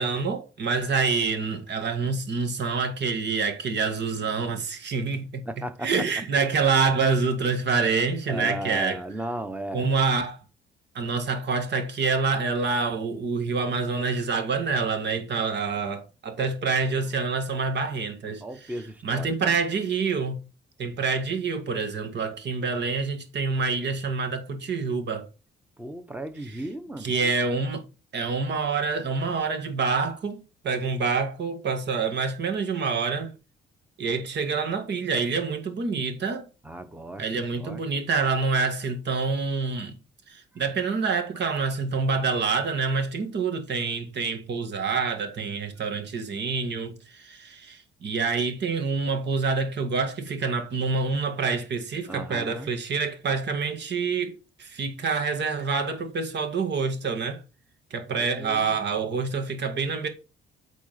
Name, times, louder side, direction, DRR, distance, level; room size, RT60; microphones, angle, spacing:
voice 1, 0.0-5.4 5.8-9.0 9.7-10.4 11.0-18.4 19.0-20.4 20.8-25.3 27.0-27.8 28.1-30.4 30.6-33.3 34.0-36.5 37.2-39.9 40.3-57.4 57.9-60.1, right 4 dB, 60° right, 2.0 m, -27 dB
voice 2, 5.4-5.9 8.3-9.9 16.6-17.1 18.4-19.6 25.8-27.3 36.6-37.8 52.1-52.7 58.1-58.8, right 1 dB, 10° right, 1.2 m, -36 dB
8.5 x 3.9 x 5.8 m
cardioid pair, 90°, 20 cm